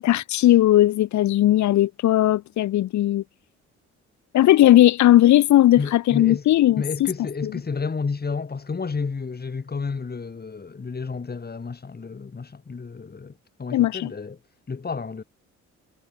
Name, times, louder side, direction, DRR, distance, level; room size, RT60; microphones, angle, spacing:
voice 1, 0.0-3.2 4.3-7.1 13.7-14.1, left 14 dB, 70° left, 0.9 m, -17 dB
voice 2, 5.8-6.5 6.8-14.4 14.7-15.2, left 4 dB, 30° left, 5.7 m, -31 dB
cardioid pair, 90°, 30 cm